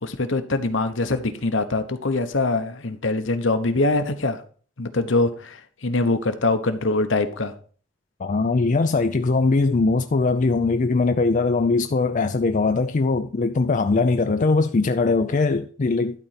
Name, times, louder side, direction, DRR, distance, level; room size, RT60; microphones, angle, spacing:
voice 1, 0.0-4.4 4.8-7.5, left 2 dB, 70° left, 1.1 m, -23 dB
voice 2, 8.2-16.3, left 3 dB, 40° left, 0.5 m, -21 dB
12.0 x 4.2 x 5.8 m
head